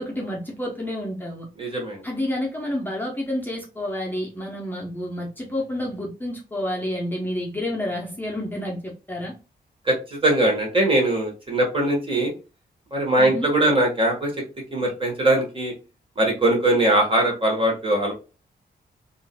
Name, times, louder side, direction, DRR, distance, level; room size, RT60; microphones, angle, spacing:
voice 1, 0.0-1.5 2.0-9.3 13.2-13.5, left 1 dB, 10° left, -2 dB, 0.7 m, -29 dB
voice 2, 1.6-2.0 9.8-12.3 12.9-14.3 14.7-15.7 16.2-18.1, right 1 dB, 30° right, 1 dB, 1.4 m, -21 dB
3.7 x 2.5 x 2.2 m, 0.31 s
wide cardioid pair, 125°, 17 cm